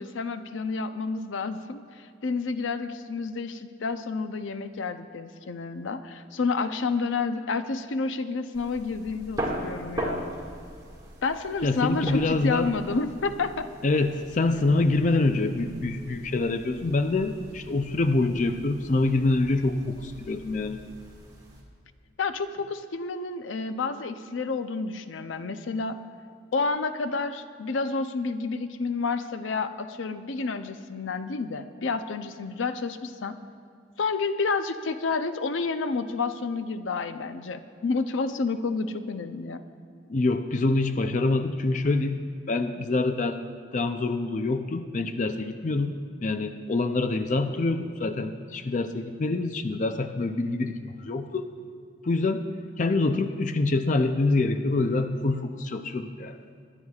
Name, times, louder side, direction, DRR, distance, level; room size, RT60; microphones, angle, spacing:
voice 1, 0.0-10.2 11.2-13.7 22.2-26.0 26.5-33.4 34.0-39.6, left 4 dB, 85° left, 10 dB, 0.6 m, -30 dB
sound 1, 8.5-21.6, right 1 dB, 20° right, 1.9 m, -40 dB
voice 2, 11.6-12.7 13.8-20.8 40.1-42.2 42.5-43.4 43.7-46.0 46.2-51.5 52.0-52.4 52.8-56.4, left 2 dB, 40° left, 8 dB, 0.4 m, -26 dB
23.5 x 11.0 x 2.4 m, 2.3 s
head